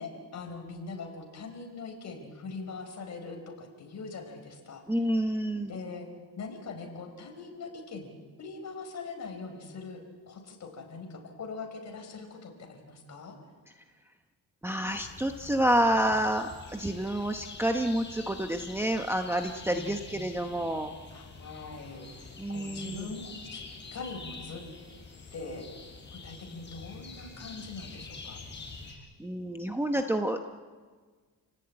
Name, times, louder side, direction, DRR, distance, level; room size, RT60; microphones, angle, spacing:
voice 1, 0.0-4.8 5.7-6.1 6.4-10.0 10.3-13.4 19.7-20.2 21.1-24.6 25.3-25.7 26.2-28.4, left 4 dB, 45° left, 3 dB, 5.0 m, -42 dB
voice 2, 4.9-5.7 14.6-20.9 22.4-23.1 29.2-30.4, right 1 dB, 5° right, 4 dB, 0.9 m, -29 dB
sound 1, 14.9-28.9, left 4 dB, 30° left, 5.9 m, -46 dB
29.5 x 18.0 x 8.8 m, 1.5 s
cardioid pair, 155°, 37 cm